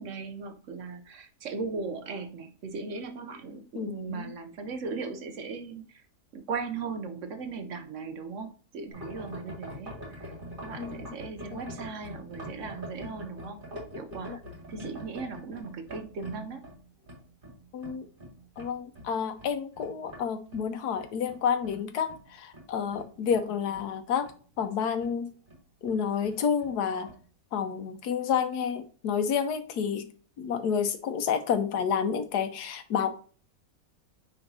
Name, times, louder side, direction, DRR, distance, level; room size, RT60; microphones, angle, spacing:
voice 1, 0.0-6.0 6.3-10.3 10.6-13.6 14.0-14.4 14.7-16.7, right 4 dB, 60° right, 0.9 m, -38 dB
voice 2, 3.7-4.3 10.8-11.1 11.5-11.7 14.3-14.4 14.8-14.9 17.7-18.1 18.6-24.3 24.6-25.3 25.8-27.1 27.5-30.1 30.4-33.2, left 7 dB, 85° left, 1.3 m, -29 dB
sound 1, 8.9-20.2 20.5-23.9 24.2-24.7 25.0-25.2 25.5-25.6 25.9-26.8 27.0-27.2, equal, 35° right, 2.7 m, -44 dB
9.4 x 4.0 x 2.7 m
omnidirectional pair, 1.7 m